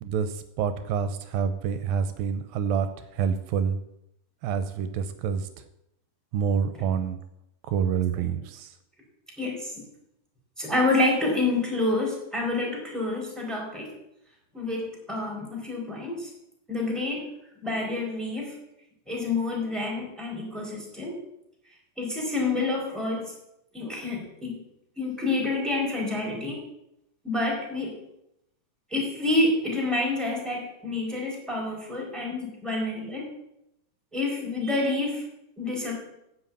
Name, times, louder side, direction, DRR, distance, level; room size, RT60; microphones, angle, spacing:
voice 1, 0.0-2.9 3.2-3.8 4.4-5.5 6.3-7.2 7.7-8.7, right 7 dB, 85° right, 11 dB, 2.4 m, -27 dB
voice 2, 9.4-9.7 10.6-13.9 14.5-16.3 16.7-17.2 17.6-18.6 19.1-21.1 22.0-23.3 23.7-24.6 25.0-26.6 27.2-27.9 28.9-33.3 34.1-35.2 35.6-36.0, left 2 dB, ahead, -3 dB, 4.1 m, -28 dB
10.0 x 7.7 x 8.7 m, 0.83 s
omnidirectional pair, 4.2 m